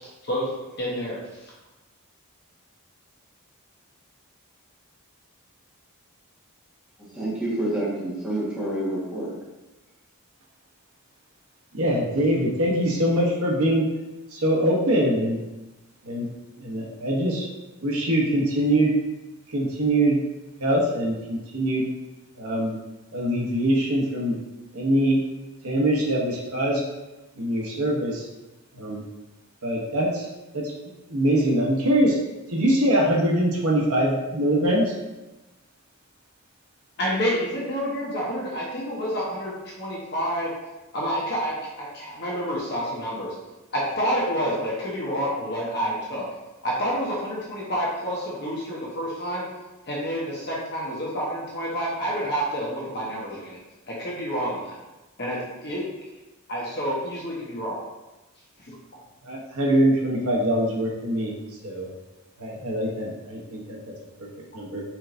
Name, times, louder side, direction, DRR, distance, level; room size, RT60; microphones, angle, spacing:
voice 1, 0.8-1.4 37.0-40.5 40.9-43.3 43.7-46.3 46.6-49.5 49.9-53.6 53.9-54.8 55.2-55.8 56.5-57.8 58.6-58.7, equal, 50° left, -5 dB, 1.0 m, -28 dB
voice 2, 7.1-9.3, right 1 dB, 5° right, -8 dB, 1.4 m, -28 dB
voice 3, 11.7-13.9 14.3-15.4 16.0-16.3 16.6-17.5 17.8-19.0 19.5-20.2 20.6-21.9 22.4-22.8 23.1-24.3 24.7-25.2 25.6-26.8 27.4-28.3 28.7-29.0 29.6-30.3 30.5-30.7 31.1-32.2 32.5-34.9 59.2-61.3 61.6-61.9 62.4-63.9 64.2-64.8, right 1 dB, 70° right, -2 dB, 0.9 m, -23 dB
4.5 x 4.4 x 2.6 m, 1.1 s
head